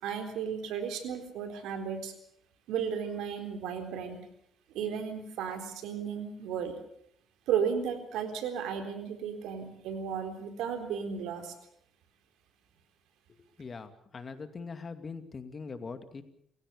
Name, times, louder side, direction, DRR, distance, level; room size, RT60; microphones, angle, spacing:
voice 1, 0.0-2.1 2.7-4.2 4.7-6.7 7.5-11.5, right 7 dB, 90° right, 7 dB, 3.9 m, -34 dB
voice 2, 13.6-16.2, left 4 dB, 40° left, 9 dB, 2.5 m, -42 dB
29.0 x 16.5 x 7.0 m, 0.69 s
cardioid pair, 90°, 0 cm